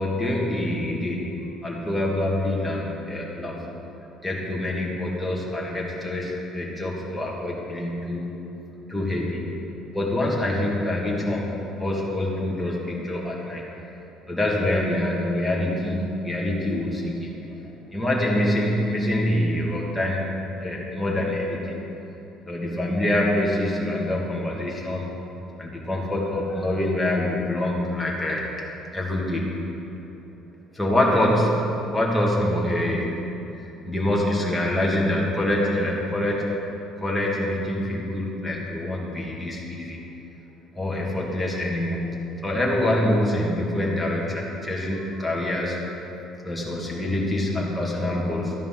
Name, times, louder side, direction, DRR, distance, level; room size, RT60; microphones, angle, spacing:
voice 1, 0.0-3.7 4.2-8.3 8.9-9.5 9.9-11.5 11.8-13.9 14.3-17.6 17.9-20.3 20.6-21.7 22.5-25.1 25.6-28.5 28.9-29.6 30.7-33.1 33.6-36.6 37.0-40.0 40.7-45.8 46.4-48.5, left 1 dB, 5° left, -4 dB, 1.8 m, -25 dB
12.5 x 10.5 x 3.8 m, 2.9 s
cardioid pair, 150°, 0 cm